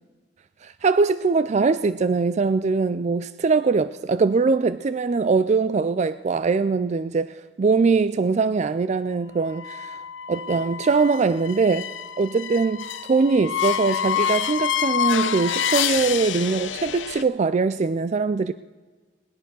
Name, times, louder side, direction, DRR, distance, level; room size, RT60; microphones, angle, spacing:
voice 1, 0.6-10.0 10.3-11.9 12.2-18.5, right 4 dB, 35° right, 0.3 m, -22 dB
sound 1, 9.5-17.2, left 9 dB, 75° left, 0.8 m, -27 dB
19.5 x 10.5 x 6.2 m
head